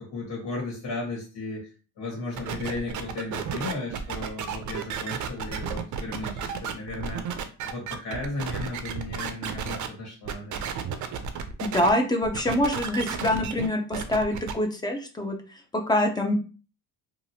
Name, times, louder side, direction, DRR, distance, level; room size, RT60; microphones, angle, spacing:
voice 1, 0.0-1.7 2.0-7.2 7.6-10.7, left 2 dB, 75° left, -3 dB, 1.5 m, -35 dB
sound 1, 2.4-9.9 10.3-11.9 12.2-14.5, right 7 dB, 50° right, 0.5 m, -33 dB
voice 2, 11.6-15.4 15.7-16.3, left 1 dB, 10° left, 4 dB, 0.5 m, -25 dB
2.9 x 2.4 x 2.7 m, 0.36 s
cardioid pair, 120°, 39 cm